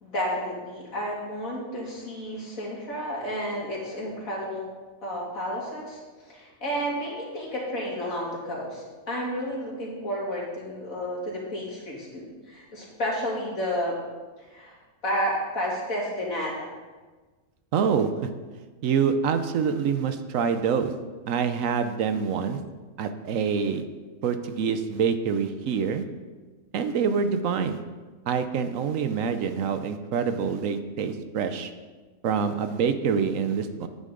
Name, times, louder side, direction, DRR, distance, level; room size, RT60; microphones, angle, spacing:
voice 1, 0.0-4.6 5.0-13.9 14.4-14.8 15.0-16.7, equal, 75° left, -4 dB, 2.9 m, -31 dB
voice 2, 17.7-18.3 18.8-20.9 21.3-22.6 23.0-23.8 24.2-26.0 26.7-27.8 28.3-31.7 32.2-33.9, right 6 dB, 70° right, 9 dB, 1.0 m, -26 dB
9.9 x 9.3 x 3.8 m, 1.3 s
omnidirectional pair, 1.5 m